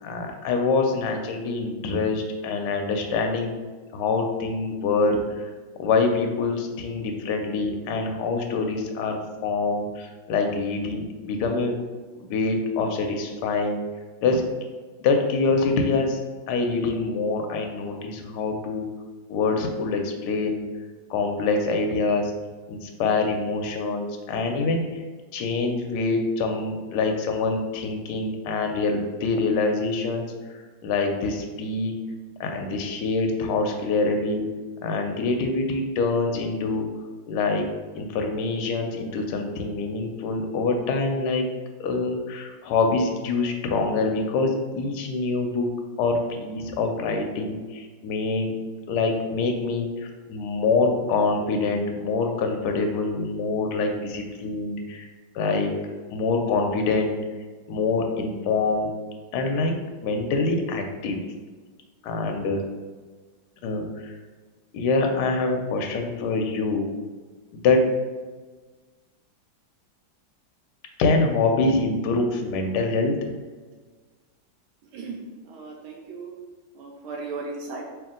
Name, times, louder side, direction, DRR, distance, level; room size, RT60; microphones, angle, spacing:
voice 1, 0.0-3.5 3.9-5.2 5.8-11.8 12.2-13.8 14.2-14.4 15.0-16.2 16.5-18.8 19.3-20.6 21.1-22.3 22.7-24.8 25.3-30.3 30.8-32.0 32.4-34.4 34.8-36.9 37.3-37.6 37.9-41.5 41.8-45.7 46.0-48.6 48.9-49.9 50.3-55.1 55.3-55.7 56.1-57.2 57.7-58.9 59.3-59.8 60.0-61.2 62.0-62.6 63.6-64.1 64.7-66.9 67.5-67.9 71.0-73.2, left 3 dB, 70° left, 3 dB, 1.0 m, -25 dB
voice 2, 75.4-76.3 76.8-77.8, right 4 dB, 85° right, -1 dB, 1.4 m, -36 dB
3.4 x 3.0 x 3.7 m, 1.4 s
omnidirectional pair, 2.2 m